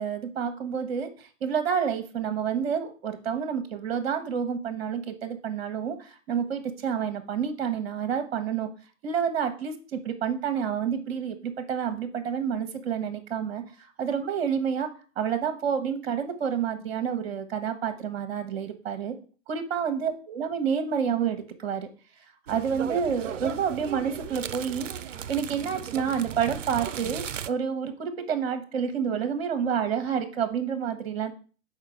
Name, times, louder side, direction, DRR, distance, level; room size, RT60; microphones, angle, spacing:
voice 1, 0.0-8.7 9.0-14.9 15.2-19.2 19.5-21.9 22.5-31.3, right 7 dB, 50° right, 9 dB, 1.1 m, -29 dB
sound 1, 22.5-27.5, right 9 dB, 70° right, 0.5 m, -36 dB
5.8 x 4.5 x 4.7 m, 0.38 s
figure-of-eight pair, 110°, 39 cm